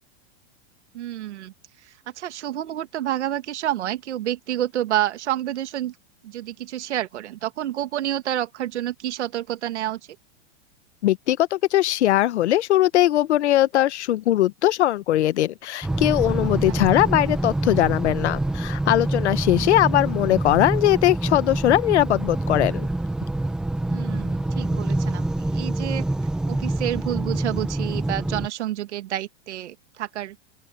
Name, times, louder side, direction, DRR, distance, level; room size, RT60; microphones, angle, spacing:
voice 1, 0.9-1.5 1.8-5.9 6.2-10.0 16.7-17.0 19.5-19.7 23.9-25.2 25.5-26.0 26.5-30.4, right 13 dB, 85° right, 2.4 m, -29 dB
voice 2, 11.0-22.9, left 14 dB, 80° left, 1.2 m, -20 dB
sound 1, 15.8-28.5, right 2 dB, ahead, 1.0 m, -26 dB
open air
supercardioid pair, 180°, 34 cm